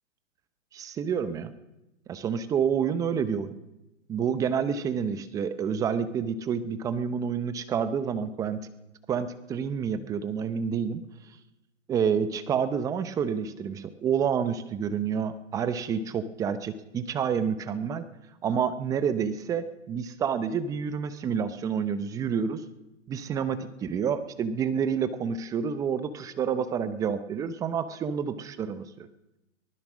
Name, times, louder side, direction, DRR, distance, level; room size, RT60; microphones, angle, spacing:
voice 1, 0.7-1.5 2.1-3.6 4.1-8.6 9.1-11.0 11.9-18.0 18.4-22.6 23.1-29.1, right 7 dB, 10° right, 12 dB, 0.8 m, -28 dB
23.5 x 19.0 x 6.2 m, 0.95 s
hypercardioid pair, 145°, 39 cm